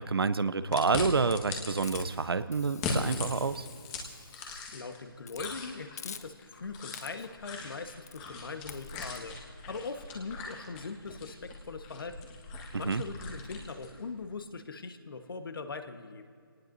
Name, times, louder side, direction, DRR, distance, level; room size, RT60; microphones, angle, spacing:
voice 1, 0.0-3.7 12.7-13.0, right 4 dB, 85° right, 13 dB, 0.8 m, -28 dB
sound 1, 0.7-2.0 2.6-5.0 5.3-14.0, left 4 dB, 15° left, 1.5 m, -40 dB
Hiss, 1.8-4.7 5.2-5.6 6.0-6.6 6.9-7.4 8.1-8.3 8.7-9.2, left 7 dB, 45° left, 0.7 m, -48 dB
voice 2, 4.7-12.3 12.8-16.2, left 4 dB, 70° left, 7 dB, 1.4 m, -41 dB
25.0 x 18.5 x 2.7 m, 2.2 s
hypercardioid pair, 165°, 12 cm